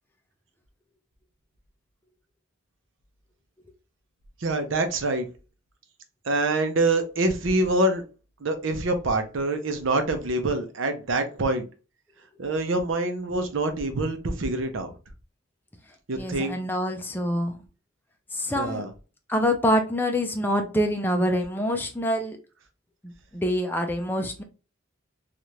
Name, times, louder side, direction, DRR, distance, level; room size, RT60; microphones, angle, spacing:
voice 1, 4.4-5.3 6.3-8.0 8.4-11.7 12.4-14.9 16.1-16.6 18.6-18.9, right 2 dB, 80° right, 0.7 m, -25 dB
voice 2, 16.2-17.6 18.3-18.8 19.3-22.4 23.0-24.4, equal, 10° left, 0.5 m, -26 dB
3.2 x 2.4 x 2.8 m
head